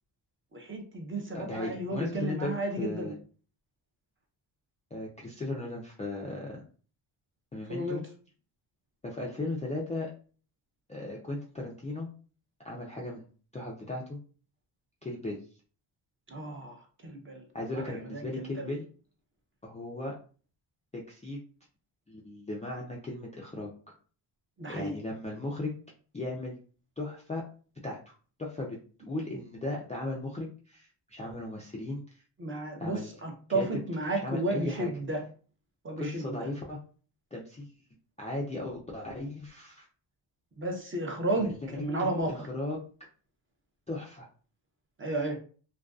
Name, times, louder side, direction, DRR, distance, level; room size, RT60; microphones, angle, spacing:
voice 1, 0.5-3.1 7.7-8.0 16.3-16.8 17.0-17.4 17.7-18.7 24.6-24.9 32.4-35.2 35.8-36.4 40.6-42.5 45.0-45.4, right 2 dB, 25° right, 2 dB, 0.6 m, -33 dB
voice 2, 1.3-3.1 4.9-6.6 7.5-8.0 9.0-10.1 10.9-12.1 12.6-13.2 13.5-14.2 15.0-15.4 17.5-18.9 19.6-20.2 20.9-21.4 22.1-23.7 24.7-25.7 26.1-26.6 27.0-27.4 27.8-28.1 28.4-32.2 32.8-33.2 33.5-33.8 34.2-34.9 36.0-36.8 37.3-37.7 38.2-39.9 41.4-42.8 43.9-44.3, left 2 dB, 15° left, -4 dB, 0.3 m, -36 dB
2.4 x 2.2 x 2.3 m, 0.40 s
cardioid pair, 95°, 47 cm